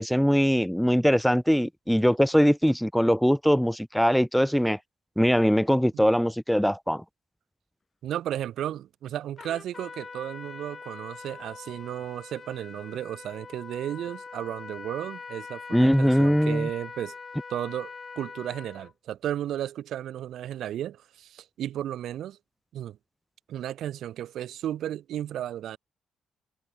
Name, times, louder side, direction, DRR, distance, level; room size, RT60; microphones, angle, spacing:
voice 1, 0.0-4.8 5.2-7.0 15.7-16.7, equal, ahead, 0.4 m, -22 dB
voice 2, 8.0-17.1 17.5-22.4 22.7-23.0 23.5-25.8, right 11 dB, 75° right, 1.4 m, -34 dB
Trumpet, 9.4-18.9, left 4 dB, 35° left, 2.0 m, -43 dB
cardioid pair, 95°, 0 cm